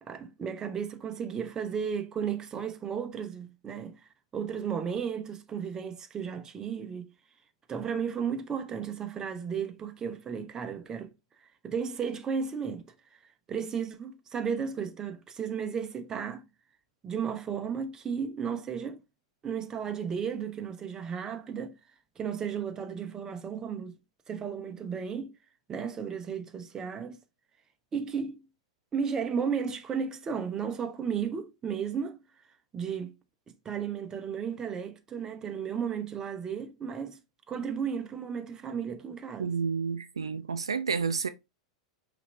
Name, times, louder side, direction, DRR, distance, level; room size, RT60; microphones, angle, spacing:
voice 1, 0.0-4.0 4.3-7.1 7.7-11.1 11.4-12.9 13.5-16.4 17.0-19.0 19.4-21.7 22.2-24.0 24.3-25.4 25.7-27.2 27.9-28.5 28.9-32.2 32.7-33.1 33.5-37.2 37.5-39.5, right 7 dB, 25° right, 0.7 m, -34 dB
voice 2, 39.4-41.3, right 5 dB, 85° right, 0.4 m, -30 dB
5.7 x 2.6 x 3.2 m
hypercardioid pair, 95°, 3 cm